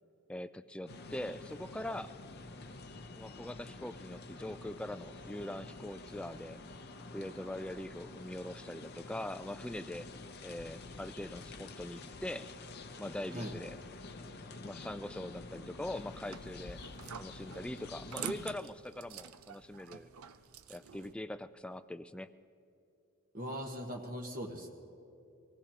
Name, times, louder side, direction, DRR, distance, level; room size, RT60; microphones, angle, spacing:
voice 1, 0.3-2.1 3.1-6.6 7.1-10.1 10.4-12.5 13.0-13.8 14.6-16.8 17.2-20.1 20.7-22.3, left 1 dB, 5° left, 12 dB, 0.3 m, -42 dB
sound 1, 0.9-18.6, left 3 dB, 50° left, 0.6 m, -48 dB
sound 2, 16.0-21.1, right 8 dB, 80° right, 0.6 m, -47 dB
voice 2, 23.3-24.7, equal, 40° right, -1 dB, 1.2 m, -40 dB
24.5 x 19.0 x 2.9 m, 2.7 s
head